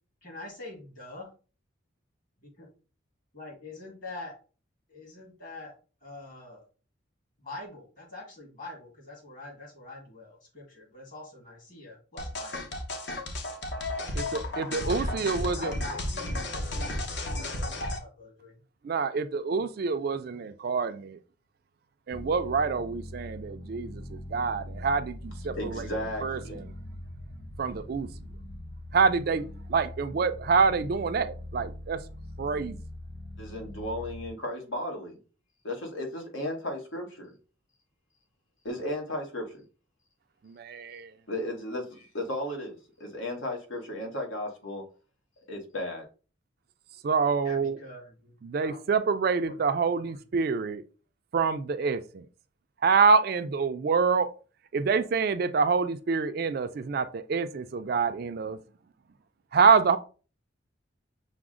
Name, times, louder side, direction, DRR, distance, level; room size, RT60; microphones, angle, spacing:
voice 1, 0.2-1.3 2.4-2.7 3.3-4.4 4.9-5.7 6.0-6.6 7.4-12.6 14.8-17.6 17.9-18.6 47.4-48.3 48.6-48.8 49.4-49.5 49.9-50.2, left 2 dB, 45° left, 1.7 m, -45 dB
sound 1, 12.2-18.0, left 1 dB, 60° left, 0.8 m, -33 dB
voice 2, 14.1-15.7 18.8-21.2 22.1-25.9 26.2-26.6 27.6-28.1 28.9-29.4 29.7-32.0 32.4-32.8 40.5-41.1 47.0-47.8 48.4-50.8 51.3-52.2 52.8-54.3 54.7-58.6 59.5-60.0, right 5 dB, 50° right, 0.3 m, -26 dB
sound 2, 22.1-34.3, left 1 dB, 20° left, 0.4 m, -42 dB
voice 3, 25.5-26.6 33.4-35.2 35.6-37.3 38.6-39.6 41.3-44.8 45.5-46.0, left 1 dB, 85° left, 1.2 m, -35 dB
5.9 x 2.0 x 3.7 m
head